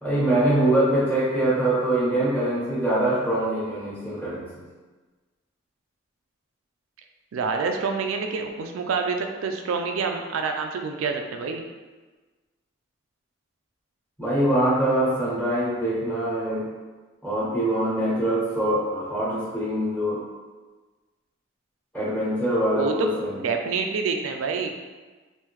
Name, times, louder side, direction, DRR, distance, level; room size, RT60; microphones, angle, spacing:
voice 1, 0.0-4.5 14.2-16.7 17.2-20.2 21.9-23.3, right 1 dB, 10° left, -9 dB, 1.1 m, -23 dB
voice 2, 7.3-11.6 22.8-24.7, right 5 dB, 85° right, 4 dB, 0.4 m, -27 dB
3.5 x 2.6 x 3.0 m, 1.3 s
head